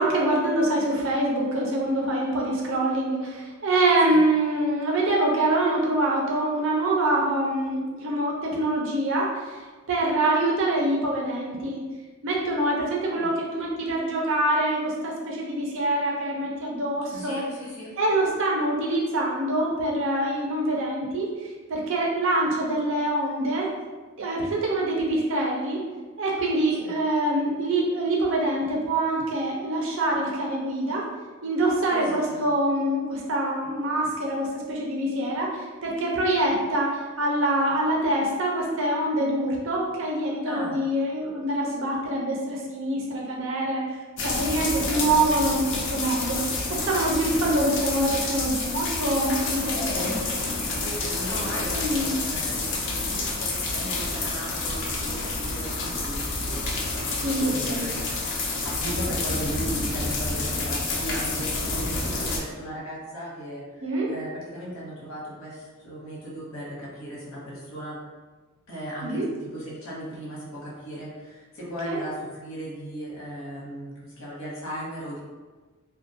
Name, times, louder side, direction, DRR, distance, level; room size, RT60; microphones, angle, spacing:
voice 1, 0.0-9.6 9.9-11.8 12.2-17.4 18.0-21.3 21.7-23.7 24.2-25.8 26.2-31.0 31.4-43.8 44.2-46.4 46.7-50.4 51.7-52.2 57.2-57.9 63.8-64.1 69.0-69.3 71.8-72.0, right 1 dB, 65° right, -2 dB, 0.5 m, -25 dB
voice 2, 17.1-17.9 26.8-26.9 31.9-32.4 40.2-40.8 44.2-45.2 49.7-58.2 58.4-68.0 68.7-75.2, equal, 80° left, -5 dB, 0.9 m, -37 dB
sound 1, 44.2-62.4, left 3 dB, 60° left, 0.4 m, -29 dB
2.4 x 2.1 x 2.7 m, 1.3 s
head